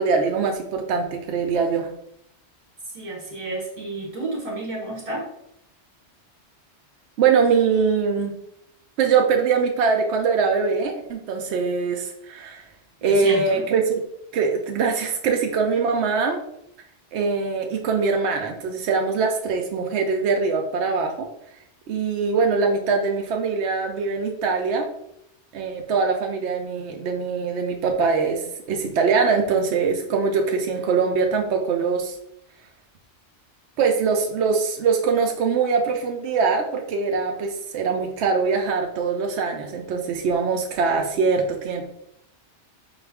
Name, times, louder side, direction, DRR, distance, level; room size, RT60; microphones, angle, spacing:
voice 1, 0.0-1.9 7.2-8.3 9.0-12.6 13.0-14.0 14.3-16.4 17.1-21.3 21.9-24.9 25.5-28.4 28.7-32.1 33.8-41.8, right 5 dB, 75° right, 2 dB, 0.8 m, -22 dB
voice 2, 2.9-5.3 13.0-13.7, right 2 dB, 35° right, -5 dB, 0.7 m, -31 dB
5.1 x 2.4 x 3.4 m, 0.76 s
omnidirectional pair, 1.2 m